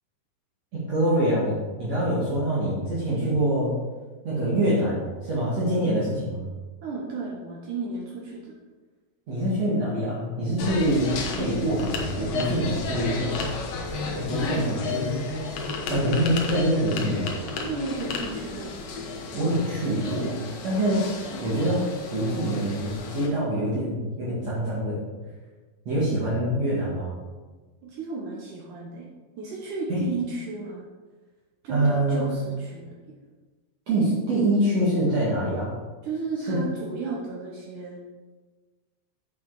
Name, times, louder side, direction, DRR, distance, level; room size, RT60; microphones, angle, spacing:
voice 1, 0.9-3.8 4.2-6.5 9.3-13.5 14.2-15.2 15.9-17.3 19.3-21.1 21.4-25.0 25.9-27.2 29.9-30.0 31.7-32.4 33.9-35.7 36.5-36.6, right 1 dB, 50° right, -8 dB, 2.5 m, -25 dB
voice 2, 6.8-8.5 13.9-14.8 17.6-18.9 27.8-29.1 29.4-30.8 31.6-33.0 36.0-38.0, right 3 dB, 70° right, -2 dB, 2.0 m, -34 dB
sound 1, 10.6-23.3, left 3 dB, 85° left, 1.4 m, -32 dB
7.4 x 7.1 x 4.7 m, 1.3 s
omnidirectional pair, 4.7 m